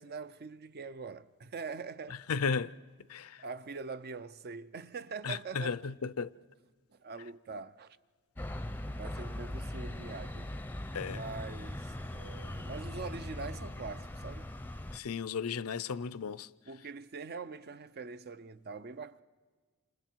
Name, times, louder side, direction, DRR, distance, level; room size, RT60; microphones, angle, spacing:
voice 1, 0.0-2.2 3.4-5.9 6.9-8.0 8.9-10.8 11.1-14.5 16.7-19.2, right 4 dB, 45° right, 0.6 m, -43 dB
voice 2, 2.3-2.7 3.1-3.4 5.2-6.3 10.9-11.2 14.9-16.5, left 5 dB, 75° left, 0.6 m, -34 dB
sound 1, 8.4-15.0, left 1 dB, 10° left, 0.6 m, -40 dB
28.5 x 28.0 x 4.6 m
head